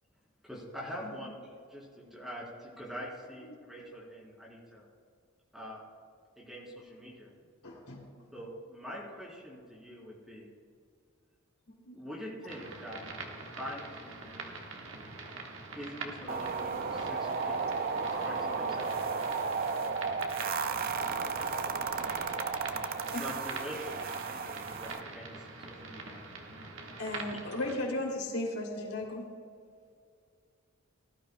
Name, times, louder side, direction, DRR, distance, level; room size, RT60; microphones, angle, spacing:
voice 1, 0.4-4.9 5.5-5.8 6.3-7.3 8.3-10.5 11.9-13.0 13.4-14.7 15.7-18.9 23.2-26.2, equal, ahead, -5 dB, 3.5 m, -44 dB
voice 2, 1.0-1.2 3.5-3.6 8.0-8.3 11.9-12.0 19.2-19.5 22.1-22.2 27.6-27.8, equal, 65° left, -1 dB, 2.2 m, -50 dB
voice 3, 7.6-8.0 20.9-21.1 23.1-23.2 27.0-29.3, left 1 dB, 85° left, -1 dB, 2.9 m, -35 dB
sound 1, 12.5-27.8, right 3 dB, 60° right, 1.5 m, -44 dB
sound 2, 16.3-25.0, right 5 dB, 40° right, 0.5 m, -34 dB
19.0 x 12.5 x 2.2 m, 2.2 s
head